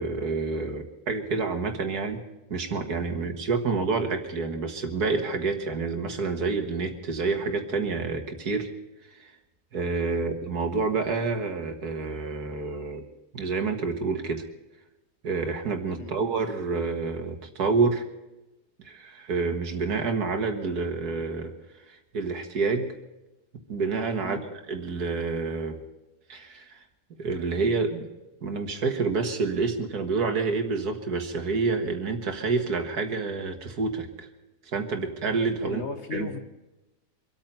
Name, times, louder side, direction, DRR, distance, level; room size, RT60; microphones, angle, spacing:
voice 1, 0.0-2.2 2.5-8.7 9.2-9.3 9.7-13.1 13.3-14.5 15.2-18.0 18.8-21.5 21.9-22.9 23.7-25.8 26.3-26.8 27.2-28.1 28.4-34.3 34.7-35.8 36.1-36.3, right 4 dB, 70° right, 5 dB, 2.1 m, -28 dB
voice 2, 35.6-36.4, left 5 dB, 45° left, 6 dB, 1.3 m, -37 dB
25.5 x 8.9 x 5.5 m, 1.0 s
omnidirectional pair, 1.7 m